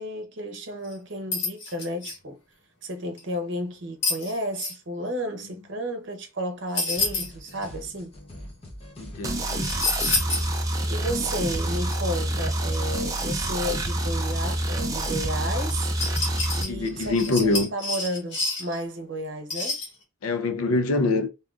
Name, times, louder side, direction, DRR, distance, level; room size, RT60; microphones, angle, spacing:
voice 1, 0.0-2.4 2.8-8.1 10.9-15.9 16.6-19.8, equal, 60° right, 0.8 m, -32 dB
sound 1, 0.8-0.9 1.3-2.2 3.2-3.3 4.0-4.7 6.7-7.6 9.6-10.5 10.9-11.0 11.9-12.0 15.7-18.8 19.5-19.9, left 3 dB, 60° left, 1.6 m, -28 dB
sound 2, 7.0-17.6, left 1 dB, 30° left, 0.7 m, -43 dB
voice 2, 9.0-9.7 16.7-17.7 20.2-21.3, left 3 dB, 85° left, 0.5 m, -24 dB
sound 3, 9.2-16.6, right 1 dB, 15° right, 0.4 m, -27 dB
3.4 x 2.8 x 2.3 m
head